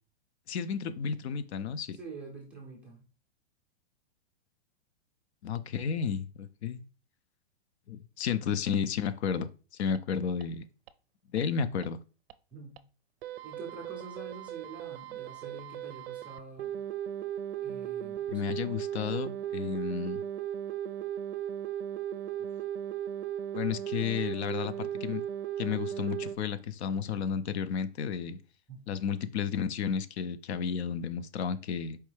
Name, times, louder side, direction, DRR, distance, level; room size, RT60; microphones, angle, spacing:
voice 1, 0.5-2.0 5.4-6.8 7.9-10.6 11.3-12.0 18.3-20.2 23.5-25.2 25.6-28.4 28.9-32.0, left 7 dB, 70° left, 0.5 m, -32 dB
voice 2, 1.9-3.0 12.5-12.8 13.4-16.8 17.6-18.5 28.7-28.8, right 4 dB, 5° right, 0.4 m, -46 dB
sound 1, 10.0-10.1 10.4-10.5 10.9-11.0 11.4-11.5 11.8-11.9 12.3-12.4 12.8-12.9 13.2-26.4, right 10 dB, 60° right, 0.4 m, -37 dB
4.5 x 3.1 x 3.2 m
hypercardioid pair, 155°, 33 cm